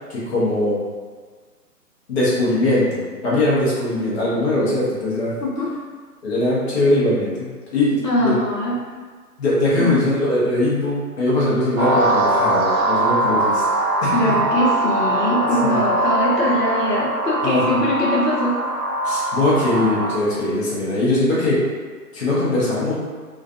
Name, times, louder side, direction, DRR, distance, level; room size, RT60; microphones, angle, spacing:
voice 1, 0.1-0.8 2.1-5.3 6.2-8.4 9.4-13.6 14.0-14.4 15.6-15.8 17.4-17.8 19.0-21.6 22.1-22.9, left 1 dB, 40° left, -8 dB, 0.8 m, -21 dB
voice 2, 8.0-8.8 9.7-9.9 14.1-18.6, left 1 dB, 75° left, -5 dB, 0.9 m, -22 dB
sound 1, 11.7-20.1, right 1 dB, 40° right, 0.7 m, -21 dB
2.4 x 2.3 x 2.4 m, 1.5 s
figure-of-eight pair, 140°, 49 cm